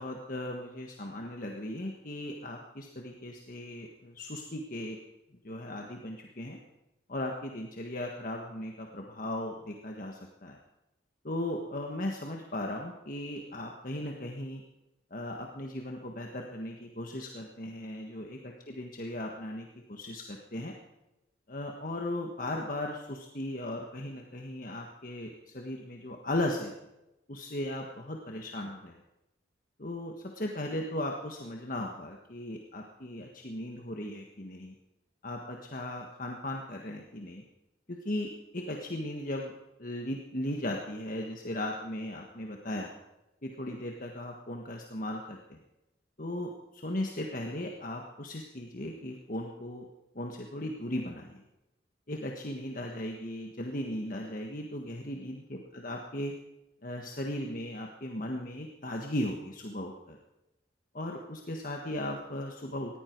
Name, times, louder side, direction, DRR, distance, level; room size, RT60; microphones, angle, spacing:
voice 1, 0.0-5.0 5.4-6.6 7.1-10.6 11.2-14.6 15.1-20.7 21.5-26.7 27.3-29.0 29.8-34.7 35.2-37.4 37.9-39.5 39.8-42.9 43.4-45.6 46.2-49.9 50.1-51.4 52.1-56.3 56.8-60.2 60.9-63.0, left 1 dB, 45° left, 1 dB, 1.5 m, -37 dB
19.5 x 14.5 x 4.6 m, 0.94 s
head